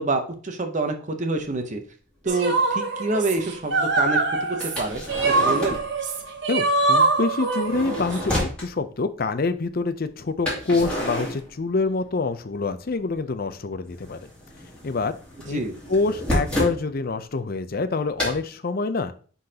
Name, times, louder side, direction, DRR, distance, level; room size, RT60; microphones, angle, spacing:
voice 1, 0.0-1.8 2.2-4.2 4.5-5.0 5.4-5.8 15.5-15.7, right 3 dB, 35° right, 5 dB, 0.8 m, -27 dB
sound 1, 1.5-1.6 2.3-2.4 4.6-5.9 7.4-8.7 10.5-12.1 12.4-13.2 13.5-16.8 18.2-18.4, left 1 dB, 5° left, 2.4 m, -30 dB
sound 2, 2.3-8.2, right 3 dB, 60° right, 1.1 m, -23 dB
voice 2, 6.5-14.2 14.8-15.2 15.4-15.6 15.9-19.1, left 3 dB, 45° left, 10 dB, 0.5 m, -26 dB
10.0 x 3.9 x 2.8 m, 0.41 s
head